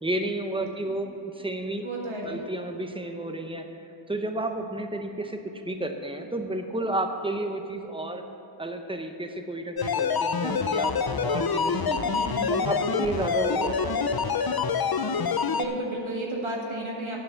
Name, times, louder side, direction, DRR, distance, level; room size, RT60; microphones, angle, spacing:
voice 1, 0.0-1.8 2.2-3.7 4.1-8.2 8.6-12.0 12.5-14.3, right 1 dB, 10° right, 5 dB, 0.9 m, -31 dB
voice 2, 1.8-2.4 12.0-12.9 15.5-17.2, right 1 dB, 80° right, -2 dB, 2.1 m, -33 dB
sound 1, 9.8-15.7, left 6 dB, 50° left, 0.6 m, -26 dB
9.6 x 7.4 x 7.0 m, 3.0 s
wide cardioid pair, 60°, 47 cm